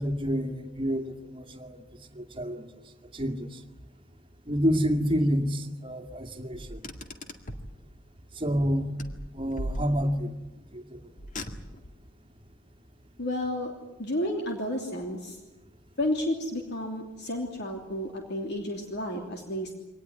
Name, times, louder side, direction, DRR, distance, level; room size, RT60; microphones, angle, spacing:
voice 1, 0.0-1.8 2.1-2.7 3.1-3.5 4.5-6.8 8.4-8.9 9.3-10.3 10.7-11.0, equal, 25° right, 5 dB, 2.2 m, -28 dB
Car, 6.5-7.8 9.0-10.3 11.2-12.0, equal, 40° left, 2.0 m, -38 dB
voice 2, 13.2-13.7 14.0-15.4 16.0-19.7, left 1 dB, 55° left, 2 dB, 3.1 m, -31 dB
24.0 x 19.0 x 9.7 m, 1.1 s
head